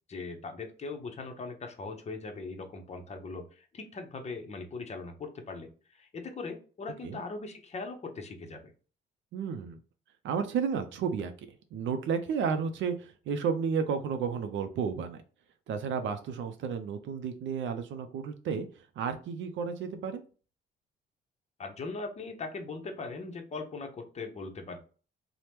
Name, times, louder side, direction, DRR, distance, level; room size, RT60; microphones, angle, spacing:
voice 1, 0.1-8.7 21.6-24.8, left 3 dB, 35° left, 4 dB, 0.7 m, -40 dB
voice 2, 9.3-9.8 10.2-11.3 11.7-15.2 15.7-20.2, right 6 dB, 70° right, 8 dB, 0.4 m, -32 dB
2.9 x 2.0 x 3.3 m, 0.38 s
cardioid pair, 90°, 20 cm